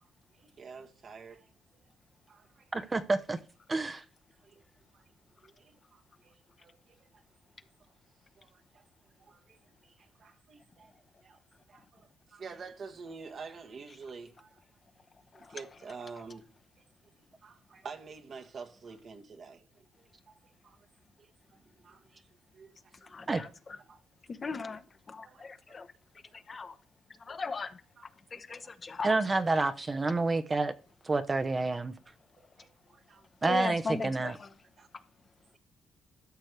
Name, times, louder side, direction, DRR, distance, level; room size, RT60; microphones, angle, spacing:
voice 1, 0.3-1.8 2.3-2.6 3.7-3.9 4.4-4.6 4.9-5.1 5.4-7.2 8.4-8.8 9.2-10.9 11.2-11.4 11.7-14.6 15.3-16.5 16.8-16.9 17.4-19.7 20.0-20.8 21.2-22.3 22.5-23.3 23.9-24.0 25.2-25.5 26.3-26.6 28.0-28.1 32.4-33.3 34.8-34.9, right 5 dB, 55° right, 1.3 m, -49 dB
voice 2, 2.7-3.4 3.7-4.0 23.3-23.4 29.0-30.7 31.0-31.9 33.4-34.3, right 3 dB, 30° right, 0.7 m, -28 dB
voice 3, 23.0-23.5 24.3-25.9 26.3-26.8 27.2-27.8 28.3-29.2 29.5-29.6 33.4-34.5, left 4 dB, 40° left, 0.9 m, -38 dB
13.0 x 6.3 x 3.3 m
supercardioid pair, 55°, 0 cm